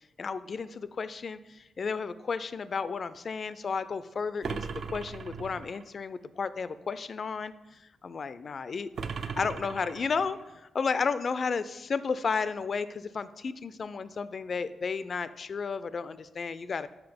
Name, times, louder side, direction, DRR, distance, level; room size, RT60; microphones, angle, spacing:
voice 1, 0.2-8.9 9.4-16.9, left 5 dB, 45° left, 14 dB, 0.3 m, -33 dB
sound 1, 4.4-5.9 9.0-10.5, right 5 dB, 60° right, 0.4 m, -38 dB
5.9 x 5.7 x 5.1 m, 1.0 s
cardioid pair, 105°, 0 cm